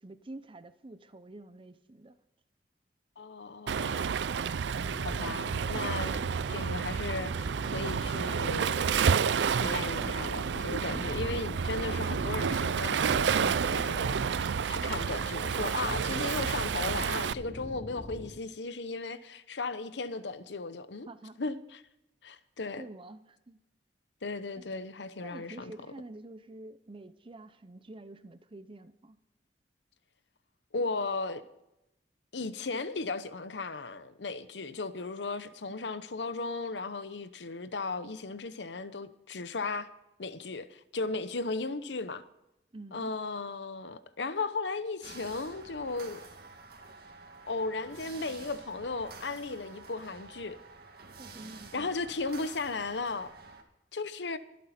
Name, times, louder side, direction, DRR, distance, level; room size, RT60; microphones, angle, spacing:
voice 1, 0.0-2.2 10.8-11.1 21.1-21.4 22.8-23.6 24.6-24.7 25.2-29.2 42.7-43.1 51.2-51.9, right 2 dB, 30° right, 0.6 m, -48 dB
voice 2, 3.2-4.1 5.0-6.2 6.5-8.8 9.5-21.1 21.4-21.8 22.2-22.8 24.2-25.7 30.7-31.4 32.3-39.9 40.2-42.2 42.9-46.2 47.5-50.6 51.7-53.3 53.9-54.4, left 3 dB, 80° left, 0.9 m, -36 dB
Waves surf, 3.7-17.3, right 6 dB, 90° right, 0.4 m, -30 dB
sound 1, 4.8-18.3, left 1 dB, 20° left, 3.4 m, -45 dB
sound 2, 45.0-53.6, right 3 dB, 60° right, 2.1 m, -49 dB
23.5 x 8.5 x 4.3 m
head